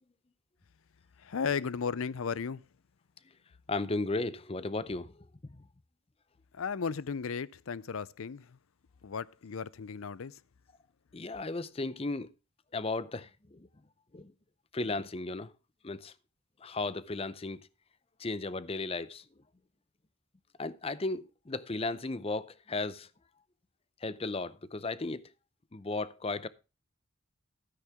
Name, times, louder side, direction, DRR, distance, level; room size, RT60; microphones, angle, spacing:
voice 1, 1.2-2.6 6.5-8.6 9.0-10.4, left 6 dB, 70° left, 0.5 m, -35 dB
voice 2, 3.7-5.6 11.1-12.3 12.7-13.7 14.1-14.3 14.7-15.5 15.8-16.1 16.6-17.6 18.2-19.3 20.6-23.1 24.0-25.3 25.7-26.5, left 3 dB, 25° left, 0.5 m, -35 dB
13.0 x 9.4 x 3.5 m
head